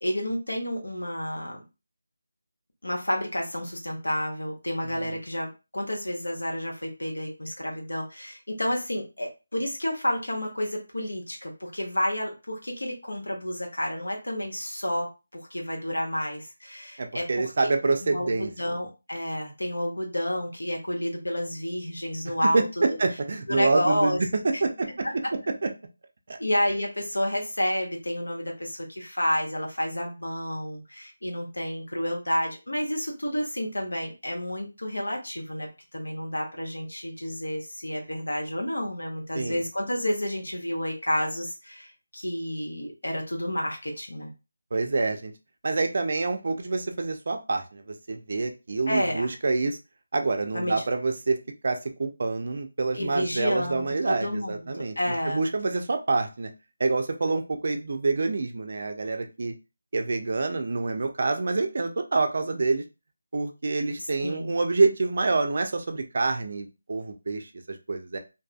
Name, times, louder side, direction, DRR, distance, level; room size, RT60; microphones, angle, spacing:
voice 1, 0.0-1.6 2.8-17.5 18.0-23.0 23.5-24.2 24.5-24.6 25.0-25.1 26.4-44.3 48.9-49.3 50.5-50.8 52.9-55.5 64.2-64.5, left 1 dB, 90° left, 0 dB, 0.9 m, -30 dB
voice 2, 17.0-18.8 22.5-25.1 25.6-25.7 26.3-26.4 39.3-39.6 44.7-45.3 45.6-49.8 50.1-51.4 51.6-54.9 55.3-56.5 56.8-59.5 59.9-62.8 63.3-68.2, right 3 dB, 50° right, 5 dB, 0.4 m, -27 dB
2.6 x 2.4 x 2.3 m, 0.28 s
figure-of-eight pair, 165°, 0 cm